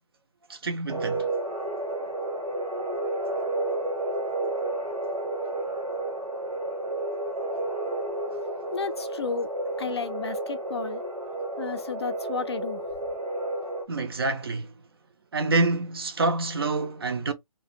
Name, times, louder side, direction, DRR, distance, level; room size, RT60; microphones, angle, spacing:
voice 1, 0.5-1.3 13.9-14.7 15.3-17.3, right 3 dB, 40° right, 0.4 m, -27 dB
sound 1, 0.9-13.8, right 2 dB, 90° right, 1.0 m, -31 dB
voice 2, 8.7-9.5 9.8-11.0 11.6-12.8, left 6 dB, 45° left, 0.4 m, -32 dB
2.4 x 2.1 x 2.4 m
figure-of-eight pair, 145°, 19 cm